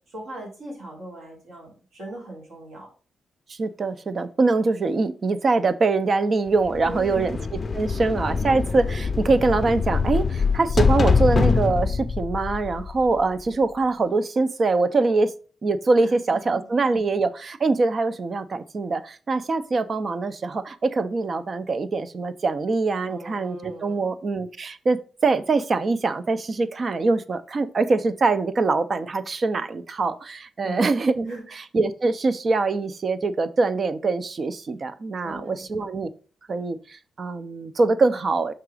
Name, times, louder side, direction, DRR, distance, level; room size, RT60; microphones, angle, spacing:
voice 1, 0.1-2.9 6.8-7.3 16.0-16.7 23.0-24.1 30.6-31.0 31.3-31.5 35.2-35.9, right 2 dB, 80° right, -2 dB, 3.3 m, -38 dB
voice 2, 3.5-7.4 7.7-15.3 15.6-31.3 31.7-36.1 36.5-38.5, right 3 dB, 45° right, 13 dB, 0.5 m, -23 dB
sound 1, 6.7-13.4, left 4 dB, 35° left, 0.5 m, -24 dB
5.7 x 3.9 x 4.8 m, 0.38 s
cardioid pair, 100°, 0 cm